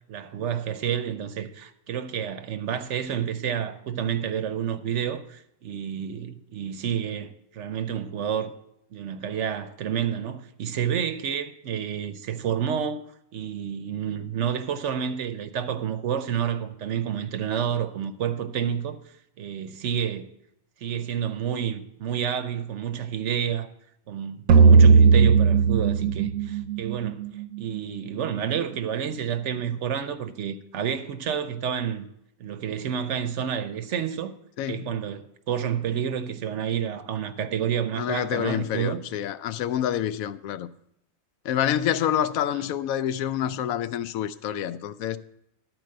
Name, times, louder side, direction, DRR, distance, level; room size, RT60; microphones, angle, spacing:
voice 1, 0.1-8.5 8.9-13.0 13.3-19.0 19.4-20.3 20.8-23.7 24.1-27.2 27.6-32.1 32.4-34.4 34.7-39.0 42.5-42.6, right 8 dB, 65° right, 0.9 m, -29 dB
sound 1, 24.5-27.7, right 5 dB, 80° right, 1.1 m, -17 dB
voice 2, 34.6-34.9 37.9-40.7 41.4-45.2, left 10 dB, 80° left, 1.0 m, -27 dB
12.0 x 4.6 x 7.6 m
omnidirectional pair, 1.5 m